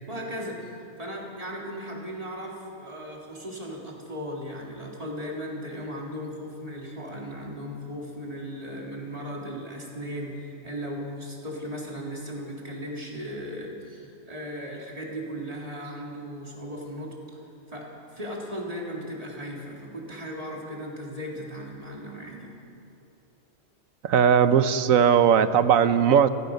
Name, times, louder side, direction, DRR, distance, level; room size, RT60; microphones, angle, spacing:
voice 1, 0.1-17.2 17.7-22.5, equal, 25° right, -2 dB, 3.8 m, -37 dB
voice 2, 24.0-26.3, right 8 dB, 75° right, 12 dB, 1.3 m, -19 dB
29.5 x 15.0 x 6.6 m, 2.9 s
omnidirectional pair, 1.4 m